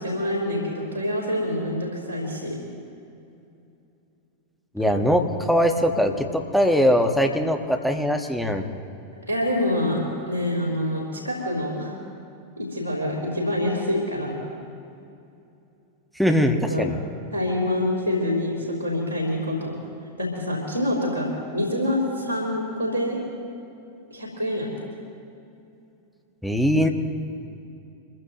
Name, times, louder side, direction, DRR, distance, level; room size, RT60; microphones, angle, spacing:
voice 1, 0.0-2.6 9.2-10.0 10.3-12.0 12.6-14.4 16.7-16.9 17.3-19.8 20.2-23.2 24.1-24.7, left 1 dB, 85° left, -6 dB, 3.5 m, -26 dB
voice 2, 4.7-8.6 16.1-17.0 26.4-26.9, equal, ahead, 4 dB, 1.3 m, -21 dB
25.0 x 15.5 x 3.0 m, 2.7 s
figure-of-eight pair, 90°, 0 cm